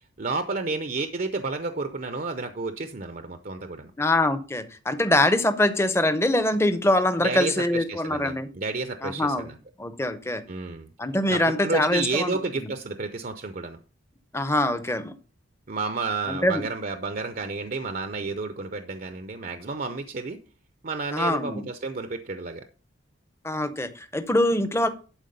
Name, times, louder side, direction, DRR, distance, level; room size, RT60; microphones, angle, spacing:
voice 1, 0.2-3.9 7.2-9.6 10.5-10.9 11.3-13.8 15.7-20.4 20.8-22.6, right 3 dB, 45° right, 9 dB, 0.6 m, -31 dB
voice 2, 4.0-8.5 9.0-9.5 9.8-10.4 11.0-12.7 14.3-15.1 16.3-16.7 21.1-21.7 23.4-24.9, left 1 dB, 15° left, 10 dB, 0.7 m, -24 dB
11.5 x 4.5 x 5.4 m, 0.38 s
head